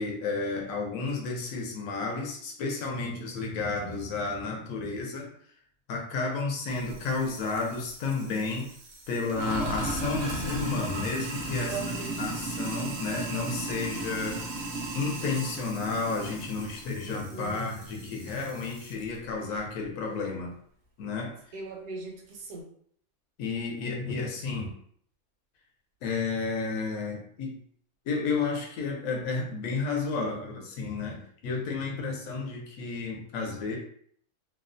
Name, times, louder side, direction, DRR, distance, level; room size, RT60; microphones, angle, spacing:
voice 1, 0.0-5.3 5.9-8.7 9.1-11.8 12.2-14.4 14.9-20.5 21.0-21.3 23.4-24.7 26.0-27.6 28.1-33.8, left 4 dB, 70° left, 0 dB, 1.0 m, -32 dB
Sink (filling or washing), 6.7-19.0, right 1 dB, 60° right, 0.7 m, -36 dB
voice 2, 11.6-12.3 17.1-17.6 21.5-22.7, right 4 dB, 75° right, 0 dB, 1.2 m, -39 dB
2.9 x 2.0 x 2.5 m, 0.62 s
omnidirectional pair, 1.5 m